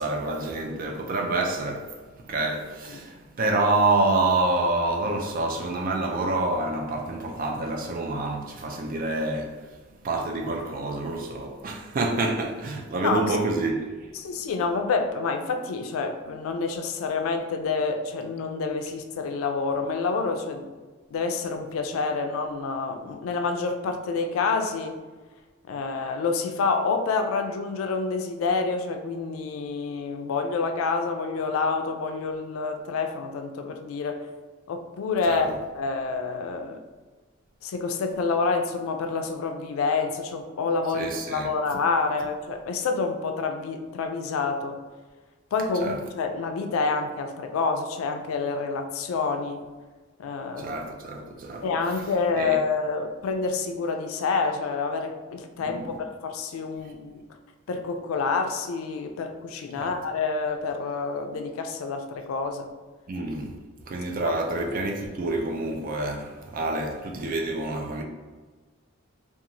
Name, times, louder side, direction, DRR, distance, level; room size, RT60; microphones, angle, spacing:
voice 1, 0.0-9.6 10.0-13.9 35.3-35.6 40.9-41.8 45.8-46.0 50.6-51.7 52.4-52.6 55.6-55.9 59.8-60.0 63.1-63.6 63.9-68.0, right 2 dB, 40° right, 0.4 m, -27 dB
voice 2, 14.2-20.7 21.1-25.0 25.7-34.3 34.7-35.5 35.8-36.8 37.6-44.8 45.5-49.6 50.2-50.7 51.6-57.2 57.7-62.7 64.2-64.4, left 4 dB, 80° left, 0.3 m, -28 dB
2.9 x 2.3 x 2.5 m
head